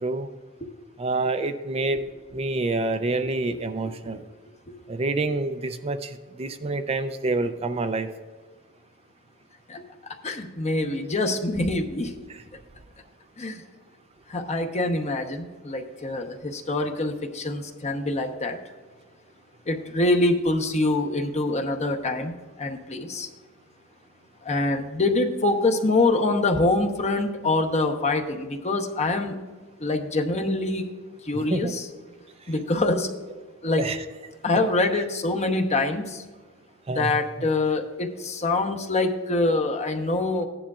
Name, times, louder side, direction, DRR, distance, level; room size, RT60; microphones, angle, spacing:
voice 1, 1.0-2.0 2.3-4.2 4.9-8.1 31.5-31.7 33.8-34.0 36.9-37.1, right 2 dB, 30° right, 9 dB, 0.4 m, -27 dB
voice 2, 9.7-12.1 13.4-13.6 14.3-18.6 19.7-23.3 24.4-29.3 29.8-30.9 31.2-31.9 32.5-33.1 33.6-33.8 34.4-36.2 36.9-40.5, left 2 dB, 35° left, 5 dB, 0.9 m, -25 dB
15.0 x 10.0 x 2.4 m, 1.4 s
head